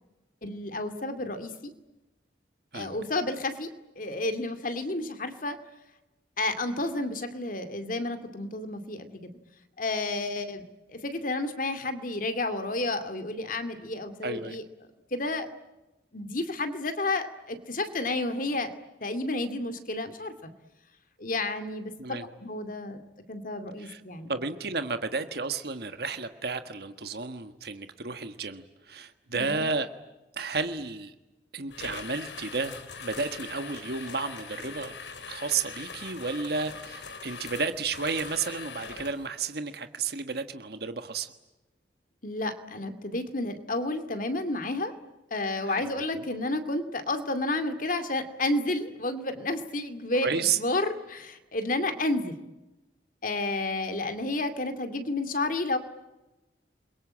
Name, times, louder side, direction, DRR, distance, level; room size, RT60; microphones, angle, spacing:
voice 1, 0.4-1.7 2.7-5.6 6.4-9.3 9.8-14.6 15.1-15.5 16.1-18.7 19.0-20.5 21.2-24.3 29.3-29.7 42.2-44.9 45.3-52.4 53.2-55.8, left 2 dB, 50° left, 8 dB, 2.4 m, -31 dB
voice 2, 14.2-14.6 22.0-22.3 23.8-24.0 24.3-29.9 30.3-31.1 31.5-34.9 35.3-41.3 45.6-46.3 50.2-50.6, right 4 dB, 60° right, 9 dB, 1.4 m, -32 dB
sound 1, 31.7-39.3, left 5 dB, 85° left, 3.5 m, -42 dB
29.0 x 22.5 x 8.7 m, 1.0 s
head